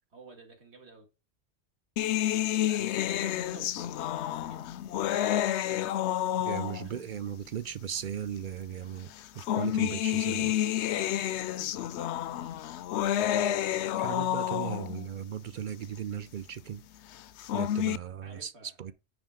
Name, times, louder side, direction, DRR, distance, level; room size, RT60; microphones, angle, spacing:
voice 1, 0.1-1.1 2.2-4.7 6.1-6.5 6.8-6.9 10.8-12.6 18.2-18.9, right 4 dB, 80° right, 2.3 m, -53 dB
sound 1, 2.0-7.0 8.0-8.1 9.2-15.1 17.2-18.0, left 11 dB, 85° left, 0.9 m, -29 dB
voice 2, 6.4-9.1 9.3-10.6 14.0-16.8 17.5-18.9, right 9 dB, 55° right, 0.6 m, -37 dB
9.7 x 4.5 x 5.0 m
omnidirectional pair, 1.1 m